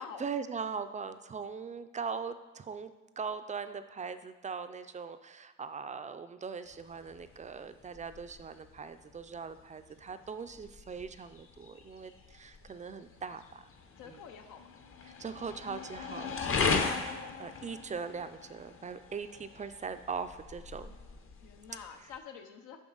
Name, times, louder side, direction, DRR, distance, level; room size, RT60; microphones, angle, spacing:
voice 1, 0.0-2.9 3.2-13.6 14.1-14.2 15.0-20.9, right 5 dB, 25° right, 10 dB, 0.4 m, -40 dB
sound 1, 6.7-22.2, left 5 dB, 45° left, 0.8 m, -39 dB
voice 2, 14.0-14.8 21.4-22.8, left 6 dB, 80° left, 5 dB, 0.7 m, -47 dB
7.2 x 5.4 x 3.9 m, 1.1 s
cardioid pair, 90°, 30 cm